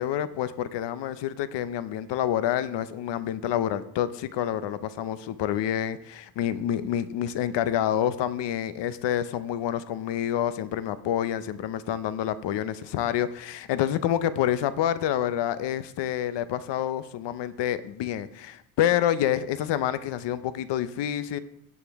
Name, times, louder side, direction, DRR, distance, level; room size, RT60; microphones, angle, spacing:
voice 1, 0.0-21.4, left 11 dB, 85° left, 13 dB, 0.7 m, -28 dB
16.5 x 7.2 x 3.5 m, 0.76 s
cardioid pair, 125°, 41 cm